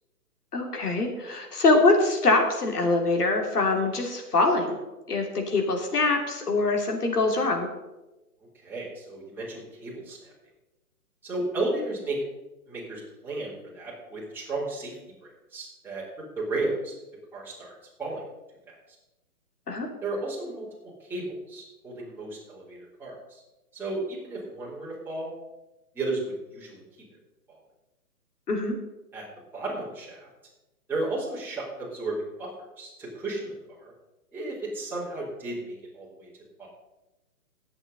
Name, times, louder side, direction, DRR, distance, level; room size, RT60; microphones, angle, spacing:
voice 1, 0.5-4.8 5.1-7.7 19.7-19.9 28.5-28.7, left 3 dB, 80° left, 2 dB, 3.1 m, -24 dB
voice 2, 8.5-10.3 11.2-12.2 12.7-14.9 15.5-16.0 16.4-16.9 17.3-17.7 18.0-18.2 18.7-18.8 20.0-23.4 23.7-25.3 25.9-26.8 27.5-27.6 29.1-29.3 29.5-30.3 30.9-32.5 32.8-33.9 34.3-36.3 36.6-36.7, right 2 dB, 5° right, -8 dB, 3.4 m, -33 dB
19.5 x 7.9 x 4.0 m, 1.0 s
hypercardioid pair, 145°, 46 cm